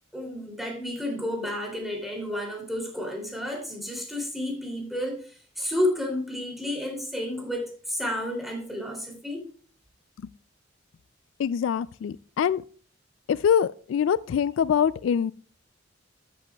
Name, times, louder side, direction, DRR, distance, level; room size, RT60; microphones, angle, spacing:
voice 1, 0.1-9.4, left 1 dB, ahead, 2.8 m, -31 dB
voice 2, 11.4-12.6 13.3-15.3, left 8 dB, 80° left, 0.3 m, -24 dB
13.5 x 8.5 x 2.3 m
head